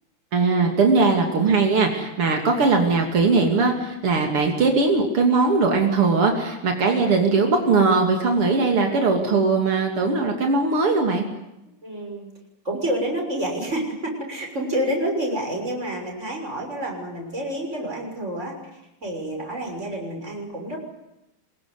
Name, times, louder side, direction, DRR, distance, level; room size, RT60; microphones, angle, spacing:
voice 1, 0.3-11.3, right 4 dB, 85° right, 3 dB, 3.6 m, -20 dB
voice 2, 11.8-12.3 12.6-20.8, right 1 dB, 30° right, 2 dB, 6.7 m, -28 dB
26.0 x 21.5 x 9.7 m, 0.89 s
omnidirectional pair, 2.4 m